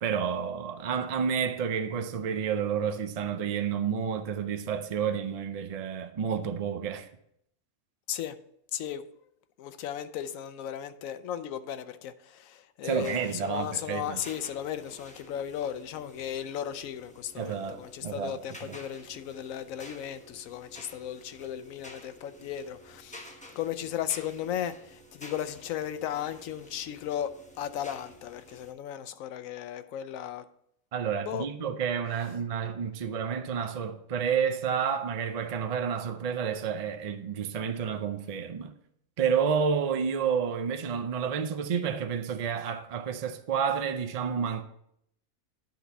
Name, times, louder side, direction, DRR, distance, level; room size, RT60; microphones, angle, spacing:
voice 1, 0.0-7.1 12.8-14.2 17.4-18.8 30.9-38.7 39.2-44.6, right 7 dB, 65° right, 0.3 m, -30 dB
voice 2, 8.7-9.1 9.6-30.5 31.2-31.5, left 10 dB, 75° left, 1.0 m, -36 dB
sound 1, 12.9-28.7, equal, 5° left, 0.7 m, -51 dB
10.5 x 4.1 x 5.4 m
omnidirectional pair, 1.5 m